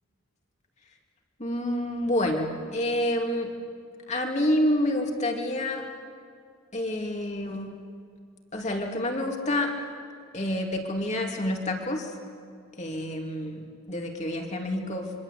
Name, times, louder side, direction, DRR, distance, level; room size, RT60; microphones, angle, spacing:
voice 1, 1.4-3.5 4.1-5.9 6.7-7.7 8.5-9.7 10.3-12.1 12.8-15.1, left 1 dB, 35° left, 2 dB, 2.8 m, -28 dB
26.0 x 24.5 x 8.5 m, 2.2 s
head